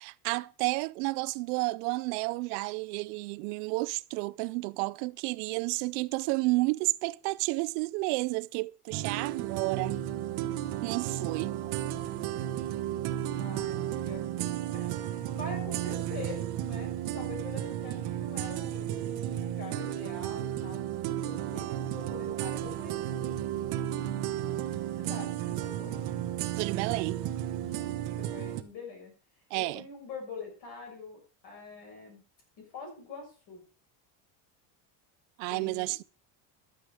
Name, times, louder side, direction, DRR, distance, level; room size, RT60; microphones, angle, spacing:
voice 1, 0.0-10.0 10.8-11.6 26.6-27.2 29.5-29.8 35.4-36.0, right 24 dB, 85° right, 0.6 m, -31 dB
sound 1, 8.9-28.6, right 12 dB, 55° right, 1.2 m, -33 dB
voice 2, 13.4-20.8 21.2-24.3 24.9-26.0 27.6-29.1 29.5-32.2 32.6-33.6 35.5-35.9, left 4 dB, 55° left, 6.5 m, -45 dB
12.5 x 8.5 x 4.9 m
cardioid pair, 175°, 45 cm